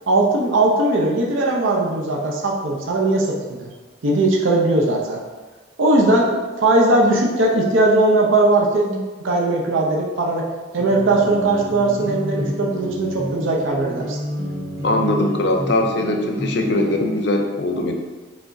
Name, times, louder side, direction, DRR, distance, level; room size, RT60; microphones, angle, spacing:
voice 1, 0.1-3.7 4.0-5.2 5.8-10.5 10.7-14.2, right 2 dB, 75° right, -1 dB, 0.7 m, -19 dB
sound 1, 10.8-17.2, equal, 15° right, 1.1 m, -30 dB
voice 2, 14.8-17.9, left 1 dB, 55° left, 3 dB, 0.5 m, -21 dB
4.8 x 3.5 x 2.6 m, 1.3 s
head